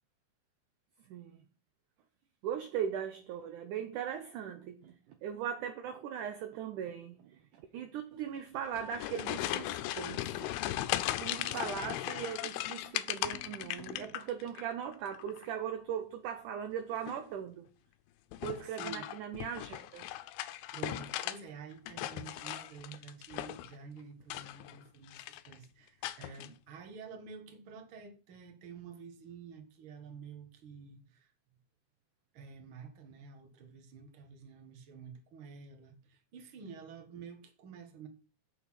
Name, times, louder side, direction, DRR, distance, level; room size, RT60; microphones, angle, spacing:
voice 1, 2.4-5.0 5.2-10.5 11.2-17.7 18.4-20.1, right 9 dB, 75° right, 2.0 m, -39 dB
sound 1, 8.6-14.6 14.9-15.5 16.9-17.3 18.3-21.4 21.7-23.7 24.2-24.8 25.1-25.5 26.0-26.5, left 14 dB, 85° left, 2.6 m, -38 dB
voice 2, 11.3-11.8 18.6-19.1 20.7-31.3 32.3-38.1, right 6 dB, 45° right, 1.8 m, -49 dB
8.5 x 6.8 x 5.8 m
omnidirectional pair, 4.4 m